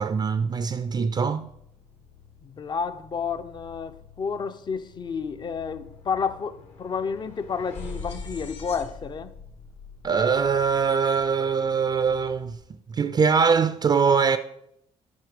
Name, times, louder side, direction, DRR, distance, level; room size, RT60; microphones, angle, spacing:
voice 1, 0.0-1.5 10.0-12.6 12.9-14.4, right 5 dB, 35° right, 0.4 m, -22 dB
sound 1, 0.9-12.6, left 7 dB, 85° left, 2.6 m, -52 dB
voice 2, 2.4-9.3, left 6 dB, 35° left, 0.6 m, -31 dB
sound 2, 4.6-4.7 5.0-11.3, left 3 dB, 65° left, 1.6 m, -43 dB
7.7 x 5.7 x 5.1 m
cardioid pair, 95°, 12 cm